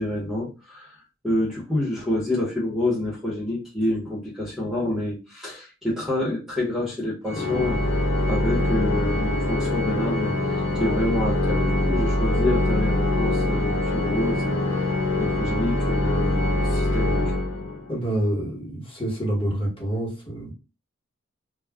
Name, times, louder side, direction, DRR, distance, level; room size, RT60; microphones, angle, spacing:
voice 1, 0.0-8.0 8.3-17.4, left 1 dB, ahead, -5 dB, 0.8 m, -28 dB
Organ, 7.3-18.0, left 1 dB, 85° left, 0.8 m, -24 dB
voice 2, 17.9-20.5, right 1 dB, 25° left, -3 dB, 1.1 m, -27 dB
2.3 x 2.0 x 3.4 m, 0.30 s
head